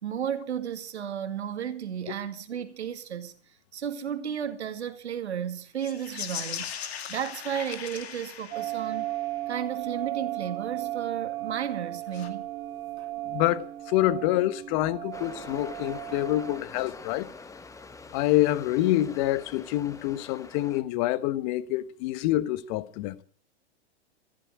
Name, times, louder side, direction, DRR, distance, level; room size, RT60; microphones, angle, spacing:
voice 1, 0.0-3.3 3.7-9.1 9.5-12.5 13.0-13.1, right 8 dB, 80° right, 2.2 m, -33 dB
sound 1, 5.8-9.3 12.1-12.3, left 9 dB, 70° left, 2.5 m, -39 dB
sound 2, 8.5-16.6, right 15 dB, 55° right, 2.6 m, -35 dB
voice 2, 13.3-17.3 18.1-23.2, left 15 dB, 45° left, 1.2 m, -26 dB
sound 3, 15.1-20.8, left 4 dB, 10° left, 1.1 m, -45 dB
14.5 x 14.5 x 6.3 m
hypercardioid pair, 120°, 33 cm